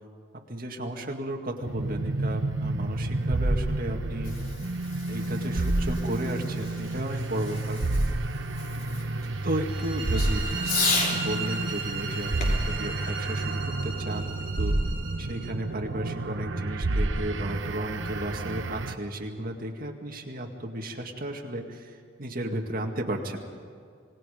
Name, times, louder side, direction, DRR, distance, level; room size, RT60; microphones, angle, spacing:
voice 1, 0.5-4.3 5.1-7.8 9.4-14.8 15.2-23.4, right 1 dB, 45° right, 2 dB, 2.1 m, -34 dB
sound 1, 1.6-18.9, right 2 dB, 70° right, 0.9 m, -30 dB
Fireworks, 4.0-11.2 12.4-14.0, left 3 dB, 45° left, 3.5 m, -35 dB
sound 2, 9.7-15.5, right 4 dB, 25° right, 6.7 m, -37 dB
26.5 x 20.5 x 5.2 m, 2.2 s
head